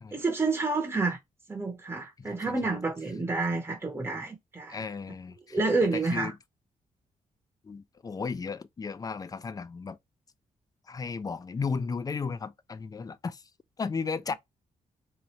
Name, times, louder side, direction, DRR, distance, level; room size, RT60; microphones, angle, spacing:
voice 1, 0.1-1.2 1.5-4.8 5.5-6.3, right 3 dB, 15° right, 0.7 m, -29 dB
voice 2, 2.2-2.8 4.7-6.3 7.6-10.0 10.9-13.4 13.8-14.3, left 5 dB, 25° left, 0.3 m, -35 dB
2.8 x 2.5 x 3.0 m
cardioid pair, 95°, 14 cm